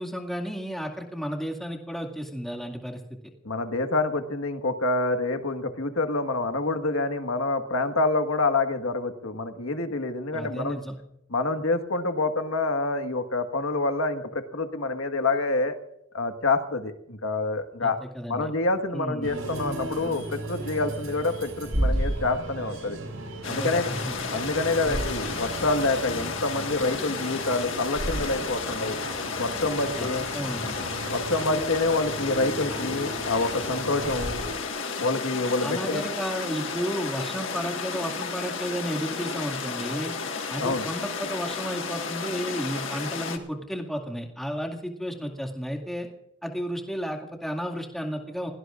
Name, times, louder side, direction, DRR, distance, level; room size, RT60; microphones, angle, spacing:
voice 1, 0.0-3.2 10.3-10.9 17.8-18.5 18.9-19.4 23.5-24.2 24.8-25.0 30.0-30.9 35.6-40.1 40.5-46.1 46.4-48.5, equal, ahead, 1 dB, 2.2 m, -33 dB
voice 2, 3.4-10.8 11.3-15.7 16.1-18.0 18.3-23.0 23.5-23.9 24.3-29.0 29.4-30.3 31.1-34.4 35.0-36.0 40.6-40.8, left 2 dB, 85° left, 6 dB, 1.6 m, -27 dB
sound 1, 19.2-34.5, right 1 dB, 85° right, 5.5 m, -34 dB
sound 2, 23.4-43.4, left 5 dB, 65° left, 1.7 m, -33 dB
28.5 x 17.5 x 2.5 m, 0.84 s
head